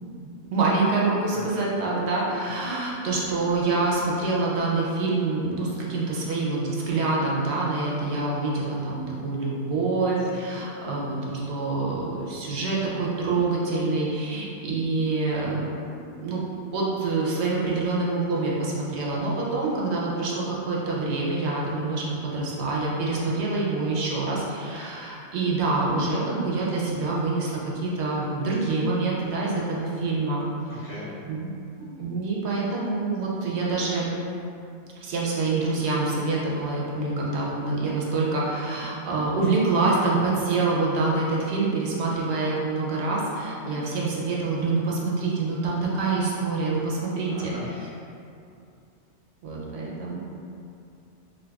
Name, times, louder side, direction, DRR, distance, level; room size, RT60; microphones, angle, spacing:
voice 1, 0.5-16.4 16.7-30.4 30.7-30.9 31.3-31.5 32.0-34.1 35.0-47.9 49.4-50.2, right 3 dB, 70° right, -4 dB, 0.8 m, -26 dB
voice 2, 1.3-1.7 30.7-31.2 43.8-44.0 47.3-47.7, left 1 dB, 45° left, -10 dB, 0.8 m, -40 dB
3.9 x 2.6 x 2.2 m, 2.6 s
omnidirectional pair, 1.2 m